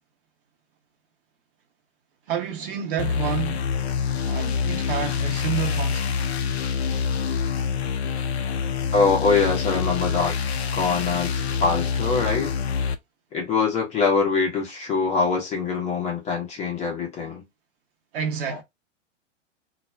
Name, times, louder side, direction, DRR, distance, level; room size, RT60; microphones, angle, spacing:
voice 1, 2.3-3.6 4.3-6.3 18.1-18.6, right 8 dB, 45° right, 0.8 m, -29 dB
sound 1, 3.0-12.9, left 6 dB, 60° left, 0.5 m, -26 dB
voice 2, 8.9-10.4 10.7-11.3 11.6-12.5 13.3-17.4 18.5-18.6, left 4 dB, 20° left, 0.7 m, -23 dB
2.3 x 2.2 x 3.2 m
figure-of-eight pair, 100°, 37 cm